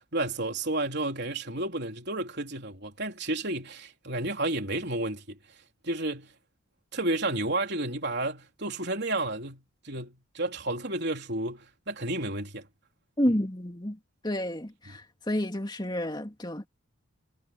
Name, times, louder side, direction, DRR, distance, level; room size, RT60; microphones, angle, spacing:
voice 1, 0.0-5.4 5.8-6.3 6.9-12.7, right 2 dB, 50° right, 4.0 m, -31 dB
voice 2, 13.2-14.0 14.2-16.7, equal, 20° left, 2.9 m, -30 dB
head